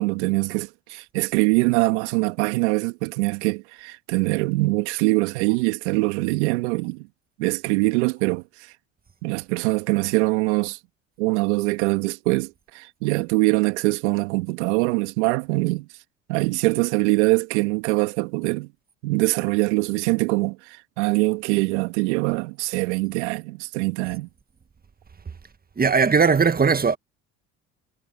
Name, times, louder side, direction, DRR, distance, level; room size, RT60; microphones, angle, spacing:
voice 1, 0.0-7.1 7.4-8.7 9.2-10.8 11.2-15.9 16.3-18.7 19.0-24.3, right 25 dB, 75° right, 2.3 m, -23 dB
voice 2, 25.8-27.0, right 5 dB, 25° right, 1.6 m, -18 dB
hypercardioid pair, 65°, 34 cm